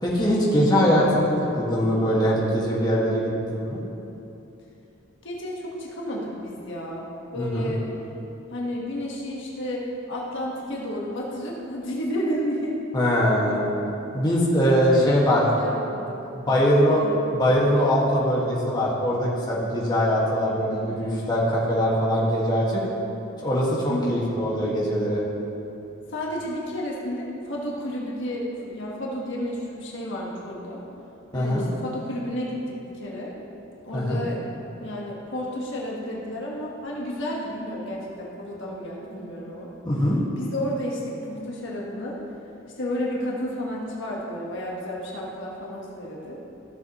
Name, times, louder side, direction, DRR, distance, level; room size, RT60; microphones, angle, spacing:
voice 1, 0.0-3.8 7.3-7.7 12.9-13.7 14.1-15.4 16.3-17.0 17.3-22.8 23.4-25.2 31.3-31.6 33.9-34.2 39.9-40.2, equal, 20° left, -6 dB, 1.7 m, -22 dB
voice 2, 5.2-7.0 7.3-7.9 8.5-12.8 13.0-13.1 14.7-15.2 15.6-16.2 16.4-16.6 16.9-17.1 17.5-17.7 20.9-21.1 23.9-24.3 26.1-30.8 31.3-33.3 33.8-34.4 34.8-39.7 40.4-42.2 42.8-46.4, equal, 65° left, -4 dB, 1.4 m, -31 dB
15.0 x 7.2 x 3.0 m, 2.9 s
head